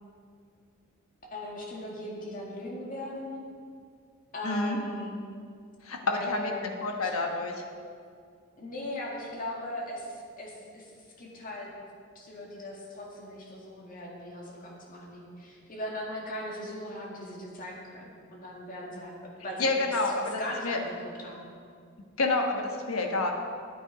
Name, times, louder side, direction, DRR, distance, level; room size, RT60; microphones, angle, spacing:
voice 1, 1.3-3.4 4.3-5.1 6.1-6.6 7.0-7.1 8.6-10.9 11.2-11.7 12.2-19.1 19.4-19.7 20.4-21.4, left 1 dB, 40° left, -2 dB, 2.0 m, -39 dB
voice 2, 4.4-4.8 5.8-6.5 6.8-7.5 19.6-20.8 22.2-23.3, left 3 dB, 85° left, 3 dB, 1.2 m, -28 dB
9.7 x 9.0 x 5.0 m, 2.2 s
head